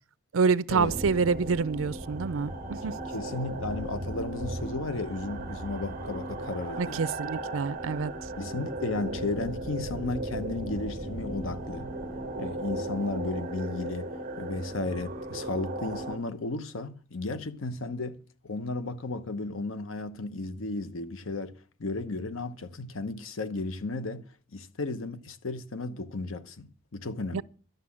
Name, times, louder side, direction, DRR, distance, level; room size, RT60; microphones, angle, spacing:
voice 1, 0.3-2.9 6.8-8.1 27.3-27.4, right 5 dB, 85° right, 0.5 m, -27 dB
sound 1, 0.8-16.2, right 1 dB, 40° right, 1.4 m, -36 dB
voice 2, 2.9-7.1 8.4-11.9 12.4-27.4, left 3 dB, 80° left, 0.9 m, -34 dB
11.5 x 6.6 x 8.6 m
head